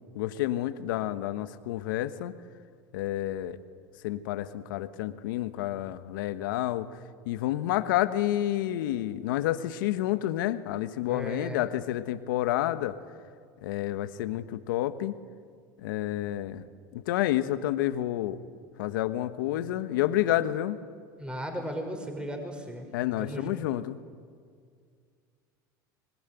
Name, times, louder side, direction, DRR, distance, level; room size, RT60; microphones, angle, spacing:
voice 1, 0.1-2.3 2.9-3.6 4.0-6.9 7.2-13.0 13.6-15.1 15.8-16.6 16.9-18.4 18.8-20.8 22.9-24.0, left 13 dB, 80° left, 12 dB, 1.3 m, -29 dB
voice 2, 11.1-11.6 21.2-22.9 23.2-23.6, equal, 10° right, 4 dB, 5.5 m, -36 dB
25.5 x 21.0 x 9.3 m, 2.1 s
hypercardioid pair, 90°, 11 cm